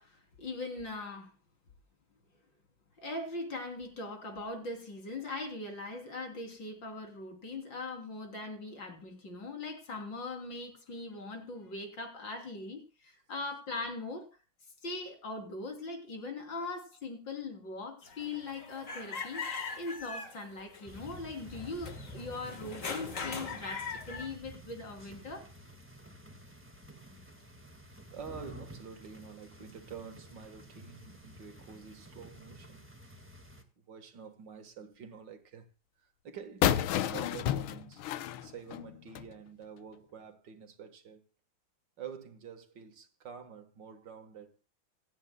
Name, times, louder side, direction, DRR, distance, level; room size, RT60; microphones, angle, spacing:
voice 1, 0.0-1.3 3.0-14.3 14.8-25.5, left 3 dB, 65° left, 4.1 m, -40 dB
sound 1, 18.0-24.3, left 5 dB, 40° left, 2.0 m, -41 dB
sound 2, 20.9-33.6, equal, 5° right, 1.7 m, -51 dB
voice 2, 28.1-32.9 33.8-35.7 36.0-38.0 38.4-41.3 42.0-44.6, right 7 dB, 65° right, 2.1 m, -48 dB
sound 3, 36.6-39.3, left 11 dB, 85° left, 1.6 m, -31 dB
27.0 x 9.2 x 2.3 m
omnidirectional pair, 2.2 m